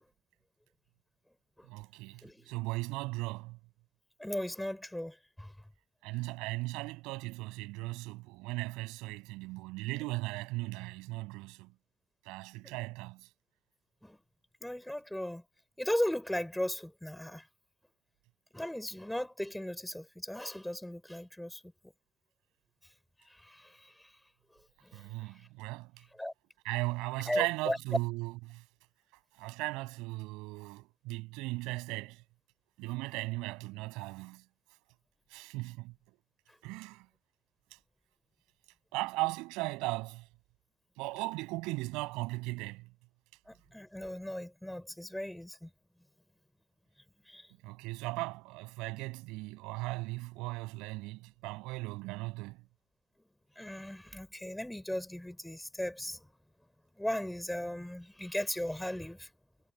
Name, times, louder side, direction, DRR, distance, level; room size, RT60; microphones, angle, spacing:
voice 1, 1.7-3.6 6.0-11.7 12.2-13.3 24.9-26.0 26.6-28.6 29.4-32.2 32.8-34.4 35.3-35.9 36.6-37.1 38.9-40.3 41.0-42.9 47.6-52.6, right 23 dB, 85° right, 7.9 m, -37 dB
voice 2, 2.2-2.5 4.2-5.5 12.6-12.7 14.0-14.2 14.6-15.4 15.8-17.5 18.5-21.7 23.2-24.2 24.8-25.4 26.1-26.3 27.3-27.8 36.5-36.6 43.5-45.7 47.3-47.5 53.6-56.3 57.0-59.3, left 1 dB, 5° left, 6.8 m, -37 dB
cardioid pair, 180°, 0 cm